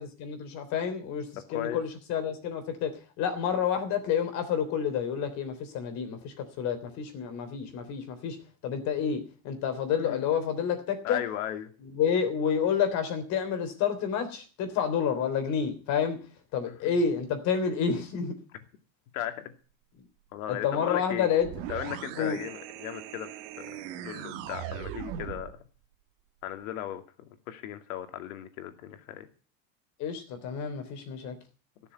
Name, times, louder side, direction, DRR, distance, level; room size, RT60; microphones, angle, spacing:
voice 1, 0.0-2.9 3.2-8.4 8.6-11.2 11.9-16.2 16.5-18.4 20.5-21.5 22.2-22.4 30.0-31.3, left 7 dB, 40° left, 8 dB, 3.5 m, -29 dB
voice 2, 1.5-1.8 10.0-10.3 11.0-11.7 16.7-16.8 19.1-19.5 20.3-21.3 21.7-25.6 26.4-29.3, left 12 dB, 85° left, 8 dB, 2.4 m, -37 dB
sound 1, 21.4-25.6, right 11 dB, 60° right, 1.5 m, -39 dB
17.5 x 7.1 x 8.2 m, 0.37 s
cardioid pair, 170°, 41 cm